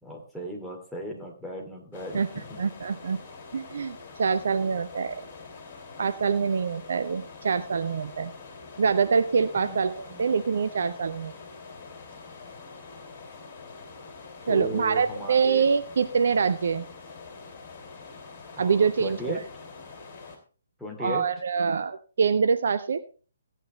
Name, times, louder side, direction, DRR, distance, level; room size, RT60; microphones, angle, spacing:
voice 1, 0.0-2.2 2.5-2.6 9.6-9.8 10.1-10.2 14.5-15.6 18.6-19.4 20.8-21.2, equal, ahead, -2 dB, 2.8 m, -36 dB
sound 1, 1.9-20.4, left 4 dB, 40° left, 3.3 m, -45 dB
voice 2, 2.6-3.2 3.5-5.2 6.0-8.3 8.8-11.3 14.5-16.9 18.6-19.4 21.0-23.0, right 5 dB, 55° right, 11 dB, 0.7 m, -25 dB
15.5 x 9.2 x 3.2 m, 0.37 s
figure-of-eight pair, 130°, 0 cm